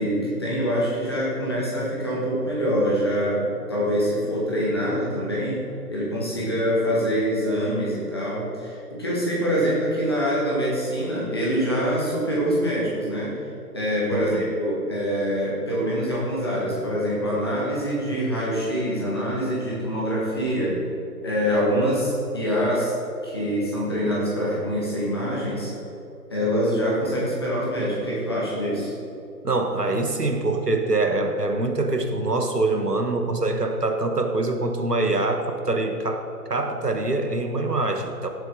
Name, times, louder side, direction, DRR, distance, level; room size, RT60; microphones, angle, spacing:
voice 1, 0.0-3.4 3.7-5.6 5.9-13.3 13.7-20.8 21.2-22.9 23.2-25.7 26.3-28.9, equal, 15° left, -6 dB, 1.4 m, -25 dB
voice 2, 14.1-14.5 29.4-36.2 36.5-38.3, right 2 dB, 80° right, 5 dB, 1.4 m, -24 dB
16.5 x 7.5 x 3.7 m, 2.8 s
figure-of-eight pair, 155°, 47 cm